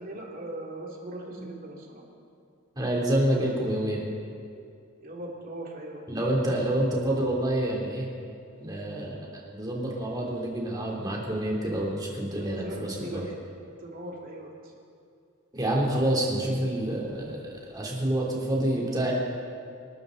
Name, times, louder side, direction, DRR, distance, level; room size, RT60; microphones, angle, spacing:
voice 1, 0.0-2.0 5.0-6.0 12.3-13.2 13.8-14.7, right 1 dB, 40° right, -2 dB, 2.7 m, -39 dB
voice 2, 2.8-4.0 6.1-8.1 8.6-9.2 9.5-13.2 15.5-17.4 17.7-19.1, right 1 dB, 20° right, -3 dB, 3.1 m, -27 dB
26.5 x 13.0 x 4.0 m, 2.4 s
head